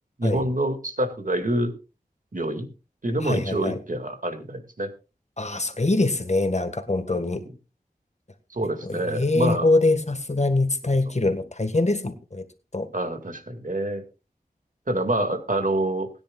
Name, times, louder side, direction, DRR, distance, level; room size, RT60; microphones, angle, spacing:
voice 1, 0.2-1.7 2.3-2.7 3.0-4.9 8.5-9.7 12.9-14.0 14.9-16.1, right 1 dB, 55° right, 6 dB, 2.3 m, -26 dB
voice 2, 3.2-3.8 5.4-7.4 8.8-12.4 12.7-12.9, left 2 dB, 45° left, 8 dB, 1.7 m, -24 dB
20.5 x 10.0 x 2.4 m, 0.31 s
wide cardioid pair, 45°, 16 cm